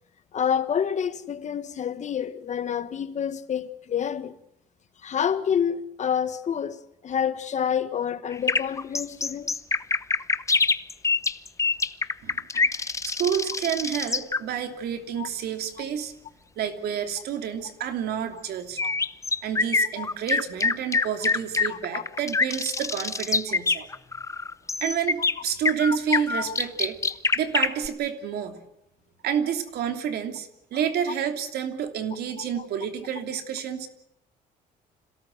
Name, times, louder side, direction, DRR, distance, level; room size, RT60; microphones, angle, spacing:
voice 1, 0.3-4.4 5.0-9.6 12.5-12.8 15.2-15.3 18.8-18.9 20.0-20.1 21.7-22.0 26.1-26.5 32.6-32.7, left 8 dB, 45° left, 1.6 m, -28 dB
sound 1, 8.3-14.4 18.8-27.9, left 4 dB, 20° left, 0.9 m, -25 dB
voice 2, 13.0-16.1 16.6-18.8 19.4-23.9 24.8-27.0 27.3-28.6 29.2-33.9, right 8 dB, 70° right, 3.0 m, -29 dB
26.5 x 17.5 x 7.9 m
cardioid pair, 110°, 17 cm